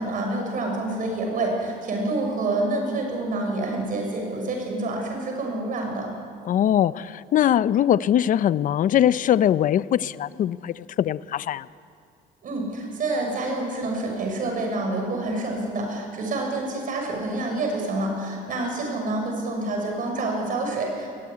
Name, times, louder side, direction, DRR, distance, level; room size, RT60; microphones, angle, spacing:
voice 1, 0.0-6.1 12.4-21.1, right 2 dB, 55° right, 2 dB, 6.9 m, -27 dB
voice 2, 6.4-11.7, left 10 dB, 50° left, 17 dB, 0.6 m, -21 dB
21.5 x 16.0 x 9.8 m, 2.3 s
cardioid pair, 110°, 17 cm